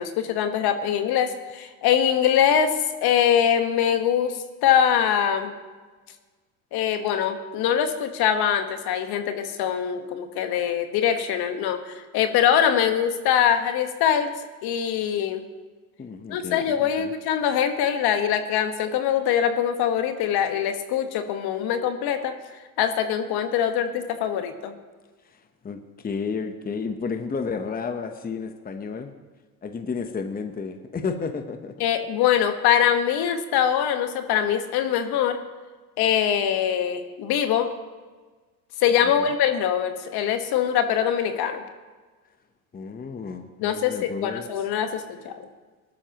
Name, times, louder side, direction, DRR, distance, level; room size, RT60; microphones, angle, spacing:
voice 1, 0.0-2.7 3.0-5.5 6.7-14.3 14.6-15.4 16.3-22.3 22.8-24.7 31.8-35.4 36.0-37.7 38.8-41.6 43.6-45.3, left 9 dB, 55° left, 7 dB, 1.5 m, -23 dB
voice 2, 16.0-17.1 25.6-29.1 29.6-31.7 39.0-39.3 42.7-44.7, left 5 dB, 20° left, 7 dB, 1.0 m, -32 dB
20.5 x 12.5 x 3.0 m, 1.4 s
hypercardioid pair, 80°, 44 cm